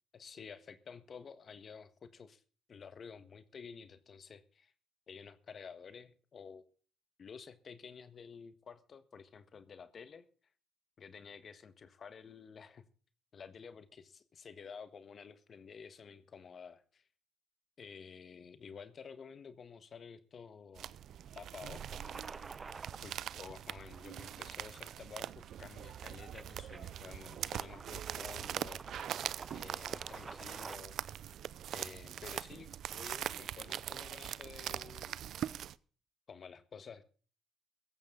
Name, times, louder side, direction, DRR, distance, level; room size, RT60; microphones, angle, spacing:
voice 1, 0.1-2.4 2.7-4.7 5.1-6.7 7.2-10.2 11.0-12.9 13.3-17.0 17.8-20.9 21.3-22.0 23.0-28.8 29.5-31.0 31.7-35.2 36.3-37.1, left 6 dB, 50° left, 1.4 m, -51 dB
sound 1, 20.8-35.8, right 10 dB, 70° right, 0.6 m, -42 dB
sound 2, 21.7-30.8, right 4 dB, 30° right, 0.7 m, -51 dB
16.5 x 14.5 x 3.8 m
cardioid pair, 90°, 0 cm